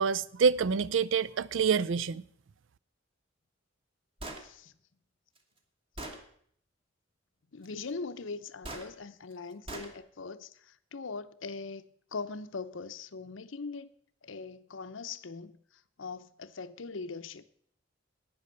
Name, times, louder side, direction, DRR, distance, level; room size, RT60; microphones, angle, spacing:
voice 1, 0.0-2.2, right 6 dB, 75° right, 0.5 m, -27 dB
Gunshot gunfire, 4.2-4.5 5.4-5.5 6.0-6.2 8.6-8.9 9.7-9.9, right 1 dB, 30° right, 1.5 m, -40 dB
voice 2, 4.4-4.7 7.5-13.9 14.2-15.6 16.0-17.4, left 4 dB, 80° left, 0.7 m, -41 dB
11.5 x 9.4 x 6.8 m
head